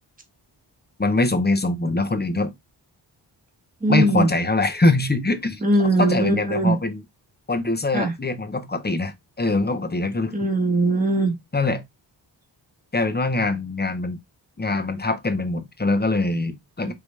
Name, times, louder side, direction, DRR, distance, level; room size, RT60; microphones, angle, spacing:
voice 1, 1.0-2.5 3.9-5.6 6.0-7.0 7.5-10.3 11.5-11.8 12.9-14.2 14.6-16.9, left 2 dB, 20° left, 0.8 m, -23 dB
voice 2, 3.8-4.3 5.6-6.8 7.9-8.1 10.3-11.3 16.8-16.9, right 2 dB, 20° right, 1.4 m, -20 dB
5.1 x 2.9 x 3.2 m
wide cardioid pair, 80°, 45 cm